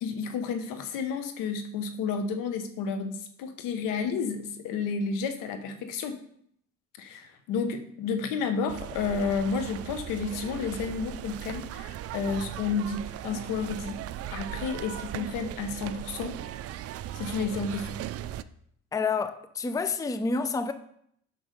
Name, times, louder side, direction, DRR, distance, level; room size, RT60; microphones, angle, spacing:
voice 1, 0.0-6.2 7.0-14.0 14.3-16.4 17.1-18.0, left 5 dB, 75° left, 1.2 m, -31 dB
sound 1, 8.7-18.4, right 12 dB, 45° right, 0.5 m, -38 dB
voice 2, 18.9-20.7, left 4 dB, 10° left, 0.5 m, -28 dB
7.8 x 6.0 x 5.1 m
supercardioid pair, 90°, 33 cm